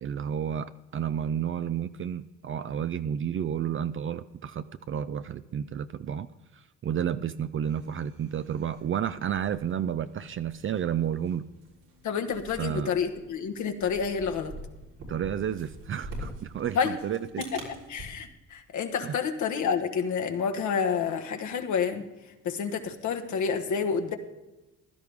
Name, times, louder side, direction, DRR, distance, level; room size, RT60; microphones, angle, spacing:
voice 1, 0.0-11.4 12.6-12.9 15.1-17.4 19.0-19.2, right 9 dB, 45° right, 12 dB, 0.5 m, -31 dB
sound 1, 7.6-18.0, right 1 dB, 80° right, 3.8 m, -46 dB
voice 2, 12.0-14.5 16.7-17.0 17.4-22.1 22.4-24.1, left 6 dB, 75° left, 5 dB, 1.4 m, -29 dB
15.5 x 12.0 x 3.5 m, 1.1 s
cardioid pair, 90°, 30 cm